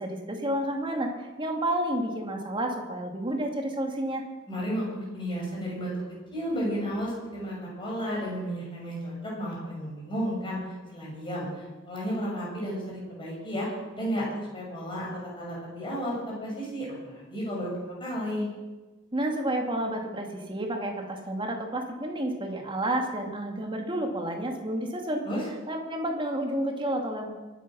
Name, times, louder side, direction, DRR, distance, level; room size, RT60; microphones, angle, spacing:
voice 1, 0.0-4.2 19.1-25.2 25.7-27.3, right 1 dB, 25° right, 2 dB, 2.3 m, -30 dB
voice 2, 4.5-10.6 10.9-18.5 25.2-25.4, equal, 25° left, -4 dB, 6.6 m, -33 dB
23.5 x 9.4 x 6.2 m, 1.3 s
head